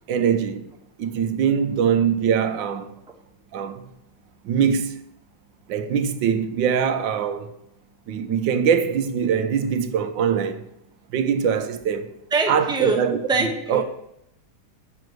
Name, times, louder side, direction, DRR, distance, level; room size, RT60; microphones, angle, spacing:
voice 1, 0.1-0.6 1.0-2.9 3.5-3.8 4.4-5.0 5.7-7.5 8.1-10.6 11.1-12.1 12.5-13.2 13.7-13.8, right 7 dB, 85° right, 1.6 m, -22 dB
voice 2, 12.3-13.0 13.3-13.8, right 3 dB, 5° right, 1.0 m, -23 dB
7.7 x 6.5 x 7.8 m
omnidirectional pair, 2.0 m